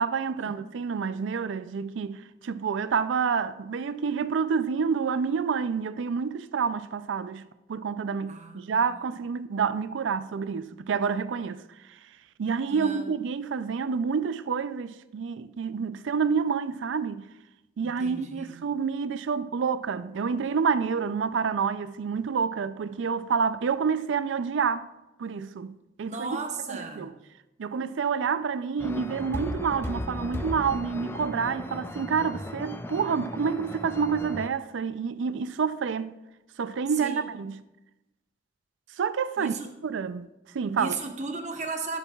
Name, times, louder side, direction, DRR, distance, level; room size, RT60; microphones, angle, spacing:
voice 1, 0.0-11.6 11.9-12.0 12.4-17.3 17.8-24.9 25.2-26.4 26.7-27.1 27.6-36.1 36.6-37.6 39.0-39.5 39.8-40.3 40.5-41.0, right 6 dB, 80° right, 0.4 m, -28 dB
voice 2, 8.3-8.9 12.7-13.1 17.8-18.6 26.0-27.1 37.0-37.3 39.4-39.7 40.8-42.0, right 3 dB, 40° right, 0.9 m, -36 dB
sound 1, 28.8-34.5, left 1 dB, 10° left, 0.4 m, -36 dB
11.5 x 7.2 x 2.3 m
head